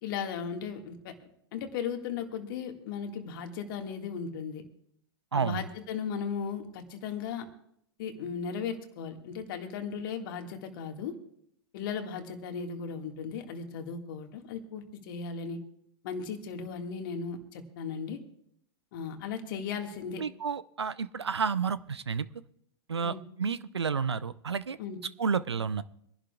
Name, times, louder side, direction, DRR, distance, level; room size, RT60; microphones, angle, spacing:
voice 1, 0.0-1.1 1.5-4.6 5.3-7.5 8.0-11.2 11.7-15.6 16.0-18.2 18.9-20.2 23.0-23.2 24.8-25.0, left 6 dB, 55° left, 4 dB, 1.9 m, -36 dB
voice 2, 5.3-5.7 20.2-22.3 22.9-24.8 25.2-25.8, right 6 dB, 90° right, 16 dB, 0.6 m, -30 dB
25.5 x 11.5 x 2.4 m, 0.73 s
hypercardioid pair, 105°, 14 cm